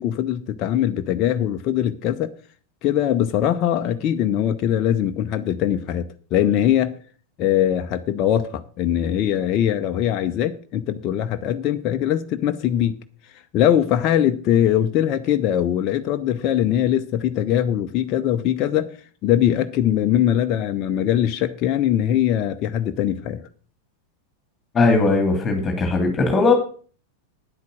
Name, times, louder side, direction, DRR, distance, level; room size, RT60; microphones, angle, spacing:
voice 1, 0.0-2.3 2.8-6.9 7.4-13.0 13.5-18.9 19.2-23.4, left 11 dB, 35° left, 0.7 m, -21 dB
voice 2, 24.7-26.5, left 3 dB, 20° left, 2.4 m, -18 dB
9.8 x 8.3 x 6.3 m
figure-of-eight pair, 90°, 0 cm